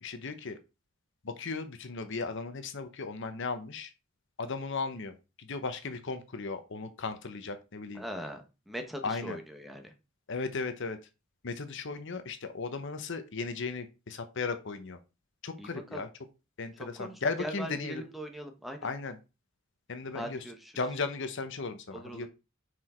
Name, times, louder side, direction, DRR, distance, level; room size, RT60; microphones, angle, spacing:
voice 1, 0.0-0.6 1.2-3.9 4.4-8.0 9.0-9.4 10.3-11.0 11.4-15.0 15.4-16.1 16.6-18.0 18.8-19.2 19.9-20.4 20.8-22.3, left 4 dB, 65° left, 10 dB, 0.9 m, -36 dB
voice 2, 7.9-9.9 15.6-16.0 16.9-18.9 20.1-20.7 21.9-22.3, equal, ahead, 4 dB, 1.1 m, -41 dB
6.1 x 4.7 x 4.4 m, 0.29 s
head